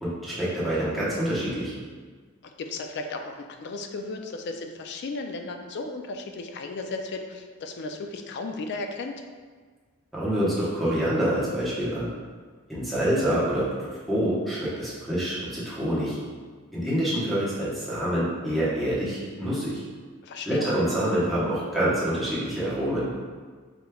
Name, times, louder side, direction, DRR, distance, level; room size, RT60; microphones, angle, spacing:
voice 1, 0.0-1.7 10.1-12.1 12.7-16.2 16.7-19.8 20.5-23.1, right 1 dB, ahead, -9 dB, 1.1 m, -26 dB
voice 2, 2.4-9.2 20.2-20.7, left 3 dB, 55° left, 5 dB, 0.4 m, -35 dB
4.9 x 3.1 x 2.3 m, 1.5 s
head